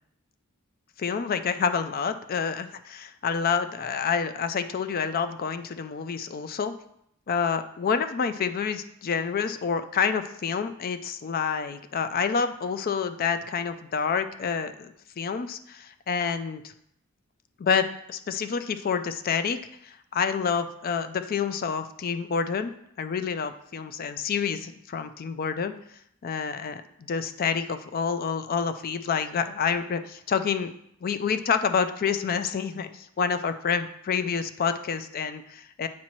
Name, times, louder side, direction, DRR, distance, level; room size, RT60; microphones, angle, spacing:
voice 1, 1.0-6.7 7.3-16.7 17.6-19.6 19.8-22.7 23.0-25.7 26.2-30.7 31.0-35.9, left 6 dB, 40° left, 10 dB, 0.3 m, -28 dB
8.5 x 4.2 x 3.0 m, 0.73 s
head